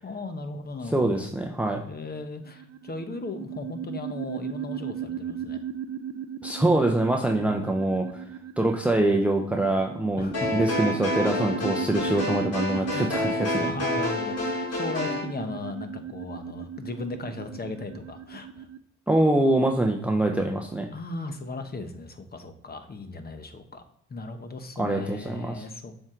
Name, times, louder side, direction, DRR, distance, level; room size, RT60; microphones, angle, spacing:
voice 1, 0.0-1.2 1.9-5.6 10.2-10.5 12.7-13.0 13.5-18.7 20.9-23.8 24.1-26.0, left 3 dB, 30° left, 8 dB, 1.0 m, -37 dB
voice 2, 0.9-1.8 6.4-8.1 8.6-13.7 19.1-20.9 24.8-25.6, right 1 dB, 5° right, 2 dB, 0.7 m, -24 dB
sound 1, 2.4-18.8, right 8 dB, 55° right, 0.5 m, -37 dB
sound 2, 10.3-15.3, left 2 dB, 55° left, 2.9 m, -28 dB
7.2 x 4.7 x 3.8 m, 0.71 s
cardioid pair, 90°, 30 cm